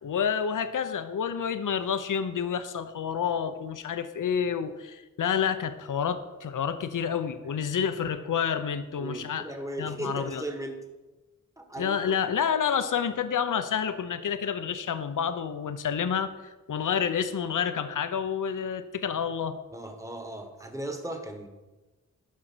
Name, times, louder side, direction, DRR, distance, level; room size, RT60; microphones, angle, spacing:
voice 1, 0.0-9.5 9.8-10.4 11.8-16.3 16.7-19.6, left 7 dB, 70° left, 11 dB, 0.7 m, -29 dB
voice 2, 9.0-10.8 11.6-11.9 19.7-21.5, right 1 dB, 10° right, 4 dB, 1.4 m, -37 dB
12.0 x 5.2 x 6.1 m, 1.2 s
wide cardioid pair, 85°, 32 cm